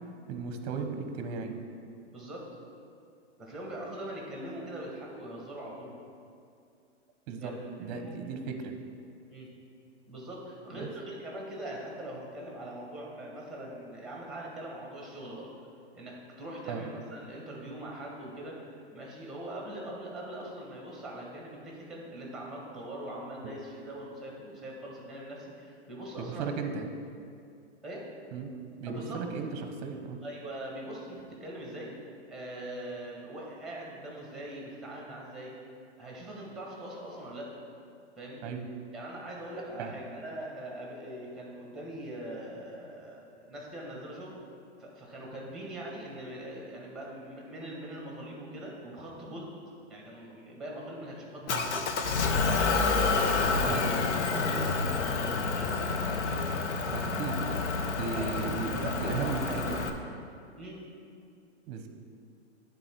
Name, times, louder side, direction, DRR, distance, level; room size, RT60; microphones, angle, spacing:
voice 1, 0.3-1.6 7.3-8.7 10.7-10.9 16.7-16.8 26.2-26.9 28.3-28.5 28.8-30.2 38.4-38.7 39.8-40.0 51.5-51.6 53.7-53.8 56.9-57.4 58.0-59.9 61.7-61.9, right 5 dB, 35° right, 6 dB, 0.8 m, -35 dB
voice 2, 2.0-2.5 3.4-5.9 7.4-8.1 9.3-9.5 10.1-15.5 15.9-26.5 27.8-28.1 28.9-29.2 30.2-31.9 32.3-35.5 36.0-37.5 38.2-38.5 38.9-44.4 44.8-49.5 49.9-56.6 58.1-58.3 58.8-59.4 60.5-60.8, right 1 dB, ahead, -2 dB, 1.5 m, -42 dB
Motor vehicle (road) / Engine, 51.5-59.9, left 4 dB, 75° left, 0.8 m, -29 dB
9.8 x 3.8 x 4.5 m, 2.4 s
hypercardioid pair, 130°, 35 cm